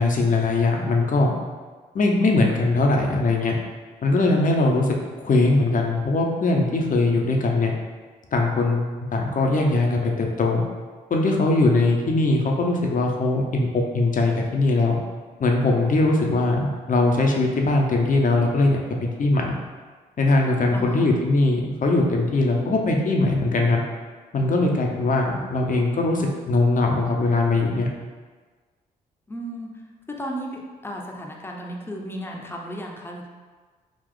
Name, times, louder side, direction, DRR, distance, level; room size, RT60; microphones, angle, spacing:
voice 1, 0.0-1.3 1.9-3.5 4.0-5.0 5.2-7.7 8.3-10.6 11.1-15.0 15.4-19.5 20.2-23.8 24.3-27.9, left 2 dB, 45° left, 1 dB, 0.7 m, -21 dB
voice 2, 20.7-21.1 29.3-29.7 30.1-33.3, equal, 10° left, 0 dB, 0.7 m, -34 dB
3.7 x 2.4 x 3.8 m, 1.4 s
hypercardioid pair, 50°, 18 cm